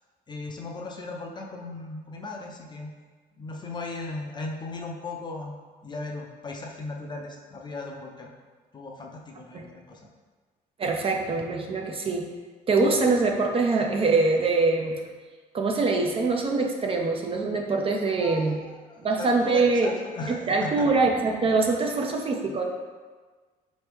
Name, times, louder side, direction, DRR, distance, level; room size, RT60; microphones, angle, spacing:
voice 1, 0.3-2.9 3.4-5.5 5.8-8.3 8.7-10.1 18.1-20.9 21.8-22.1, left 3 dB, 25° left, 0 dB, 0.6 m, -37 dB
voice 2, 10.8-12.3 12.7-15.0 15.5-18.6 19.0-19.9 20.3-22.6, right 3 dB, 35° right, 2 dB, 0.5 m, -24 dB
4.3 x 3.1 x 3.4 m, 1.4 s
cardioid pair, 110°, 17 cm